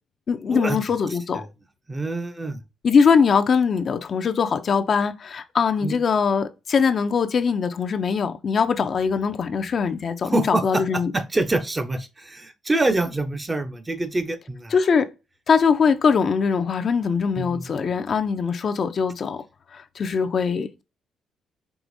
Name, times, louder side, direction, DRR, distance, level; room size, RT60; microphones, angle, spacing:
voice 1, 0.3-1.5 2.8-11.1 14.7-15.1 15.5-19.4 19.7-20.8, left 6 dB, 50° left, 0.4 m, -22 dB
voice 2, 1.9-2.6 5.8-6.0 10.2-10.8 11.1-14.7 17.4-17.9, right 2 dB, 20° right, 0.5 m, -26 dB
4.8 x 2.8 x 2.6 m
cardioid pair, 90°, 0 cm